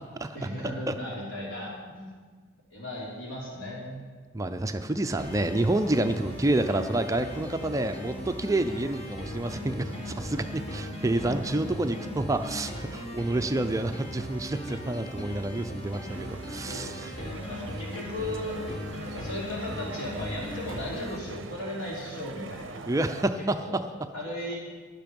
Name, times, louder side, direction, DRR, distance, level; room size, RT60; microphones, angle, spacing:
voice 1, 0.3-2.1 2.7-4.0 11.2-11.8 16.6-18.6 19.0-22.9 23.6-23.8 24.1-24.6, left 1 dB, 85° left, -5 dB, 3.1 m, -36 dB
voice 2, 4.3-17.1 22.9-23.6, right 1 dB, 15° right, 8 dB, 0.4 m, -28 dB
sound 1, 5.2-21.2, equal, 30° left, 1.6 m, -38 dB
sound 2, 16.1-23.3, right 4 dB, 75° right, 0.5 m, -44 dB
11.5 x 10.5 x 5.3 m, 1.5 s
head